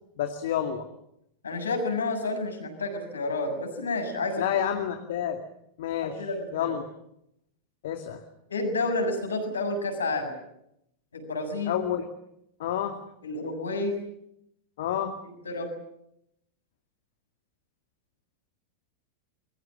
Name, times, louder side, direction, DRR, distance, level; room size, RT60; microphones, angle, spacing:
voice 1, 0.2-0.8 4.4-5.4 5.8-6.2 6.5-6.9 7.8-8.2 11.7-12.1 12.6-13.0 14.8-15.1, left 10 dB, 55° left, 5 dB, 2.2 m, -29 dB
voice 2, 1.4-4.4 6.0-6.8 8.5-10.4 11.1-11.7 13.2-14.0 15.0-15.1 15.4-15.7, left 2 dB, 70° left, 5 dB, 7.1 m, -30 dB
28.0 x 22.5 x 7.6 m, 0.79 s
figure-of-eight pair, 90°, 0 cm